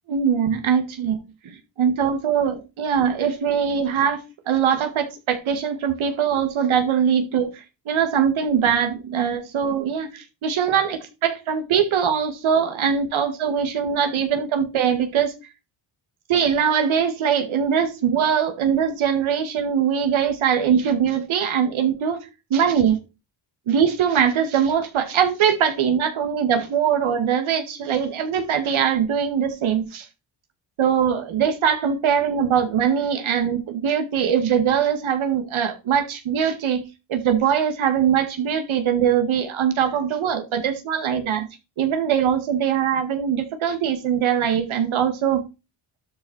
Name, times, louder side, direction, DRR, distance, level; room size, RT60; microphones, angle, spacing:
voice 1, 0.1-1.2 1.4-15.3 16.3-22.2 22.5-23.0 23.7-30.1 30.8-36.8 37.1-41.5 41.8-45.4, right 8 dB, 85° right, 2.0 m, -22 dB
12.5 x 5.6 x 4.3 m
cardioid pair, 110°, 47 cm